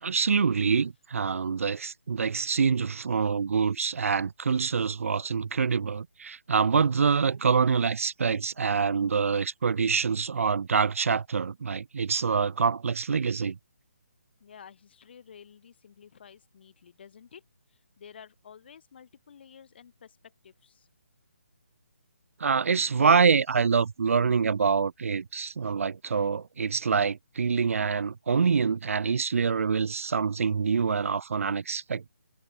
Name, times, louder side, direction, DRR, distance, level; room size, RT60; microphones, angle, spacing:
voice 1, 0.0-13.6 22.4-32.1, right 5 dB, 65° right, 0.4 m, -26 dB
voice 2, 14.4-17.4 17.7-20.9, left 7 dB, 45° left, 2.6 m, -52 dB
figure-of-eight pair, 160°, 8 cm